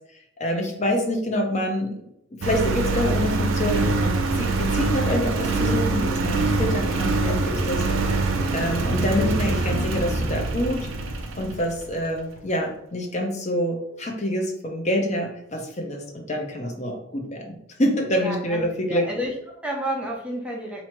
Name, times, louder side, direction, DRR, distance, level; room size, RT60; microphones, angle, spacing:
voice 1, 0.4-1.9 2.3-8.2 8.5-10.9 11.4-19.1, left 1 dB, 35° left, 1 dB, 0.6 m, -26 dB
Engine, 2.4-11.8, right 3 dB, 85° right, 0.5 m, -24 dB
voice 2, 18.1-20.8, right 1 dB, 5° right, -2 dB, 0.7 m, -31 dB
3.0 x 2.7 x 4.4 m, 0.76 s
head